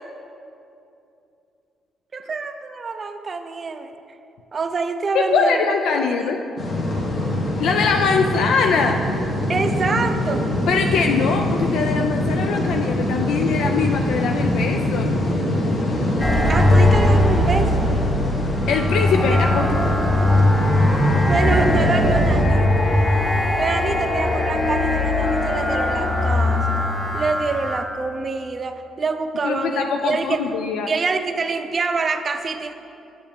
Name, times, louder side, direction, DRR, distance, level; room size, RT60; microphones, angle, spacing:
voice 1, 2.1-3.9 4.5-5.7 5.9-6.4 9.5-10.5 16.5-17.9 19.2-19.5 21.3-22.9 23.5-26.8 27.1-30.4 30.9-32.7, right 4 dB, 40° right, 8 dB, 0.5 m, -26 dB
voice 2, 5.1-6.4 7.6-9.0 10.7-15.2 18.7-19.7 29.4-30.9, left 5 dB, 80° left, 3 dB, 0.3 m, -22 dB
sound 1, 6.6-22.5, left 1 dB, 55° left, 1.3 m, -23 dB
sound 2, 16.2-27.8, left 1 dB, 20° left, 0.8 m, -20 dB
8.5 x 6.9 x 3.5 m, 2.7 s
cardioid pair, 90°, 0 cm